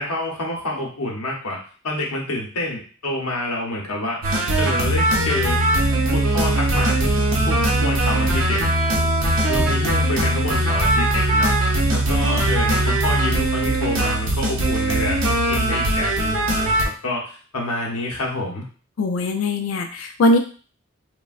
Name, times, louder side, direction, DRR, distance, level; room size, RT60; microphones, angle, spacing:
voice 1, 0.0-1.6 1.8-4.2 4.6-5.6 6.0-7.1 7.4-8.7 9.5-11.5 11.9-15.2 15.5-18.7, left 1 dB, 85° left, -2 dB, 0.7 m, -27 dB
sound 1, 4.2-16.8, right 1 dB, 60° right, 0.6 m, -20 dB
voice 2, 19.0-20.4, left 1 dB, 65° left, 5 dB, 0.3 m, -20 dB
3.3 x 2.1 x 2.3 m, 0.39 s
head